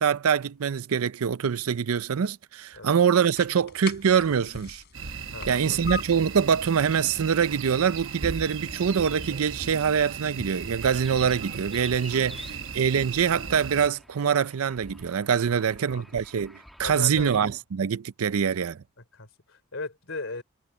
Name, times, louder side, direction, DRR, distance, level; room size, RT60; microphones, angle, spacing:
voice 1, 0.0-4.8 5.5-18.8, right 7 dB, 90° right, 0.5 m, -24 dB
sound 1, 2.7-14.4, left 6 dB, 50° left, 4.6 m, -46 dB
sound 2, 4.9-13.9, right 6 dB, 65° right, 1.2 m, -37 dB
voice 2, 5.3-5.8 12.1-12.6 15.5-16.2 16.8-17.3 19.1-20.4, left 3 dB, 65° left, 3.6 m, -38 dB
sound 3, 7.9-17.4, equal, ahead, 1.7 m, -46 dB
head